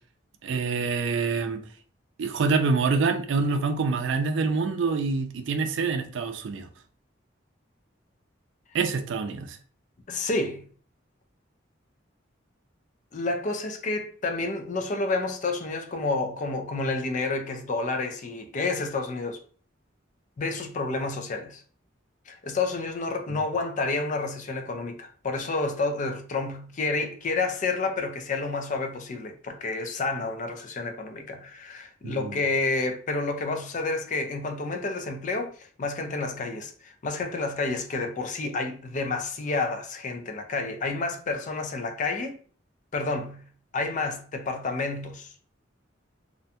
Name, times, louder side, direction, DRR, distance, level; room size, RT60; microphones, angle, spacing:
voice 1, 0.4-1.6 2.2-6.7 8.7-9.6 32.0-32.4, right 4 dB, 75° right, 0.4 m, -26 dB
voice 2, 10.1-10.6 13.1-19.4 20.4-21.6 22.3-42.4 42.9-43.4 43.7-45.3, left 3 dB, 40° left, 0.4 m, -29 dB
2.5 x 2.2 x 2.7 m
head